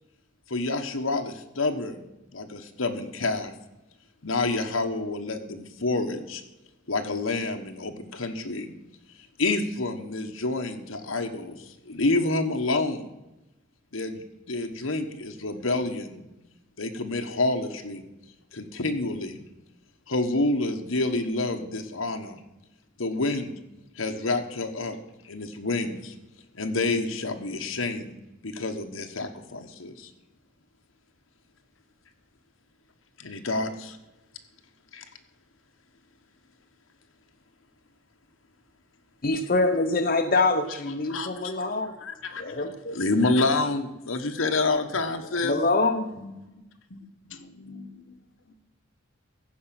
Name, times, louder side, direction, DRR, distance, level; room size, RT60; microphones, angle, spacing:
voice 1, 0.5-2.1 2.3-3.5 4.2-6.4 6.9-8.8 9.4-13.1 13.9-16.3 16.8-18.1 18.5-19.4 20.1-22.4 23.0-23.6 23.9-25.0 25.2-26.1 26.5-28.2 28.4-30.1 33.2-34.0 34.9-35.0 41.1-42.4 42.9-45.6, left 2 dB, 85° left, 1.3 m, -28 dB
voice 2, 39.2-41.9 42.4-43.0 45.4-46.1, left 3 dB, 45° left, 0.9 m, -25 dB
voice 3, 46.2-46.5 46.9-48.0 48.5-48.6, left 3 dB, 70° left, 1.2 m, -45 dB
15.0 x 5.5 x 8.8 m
head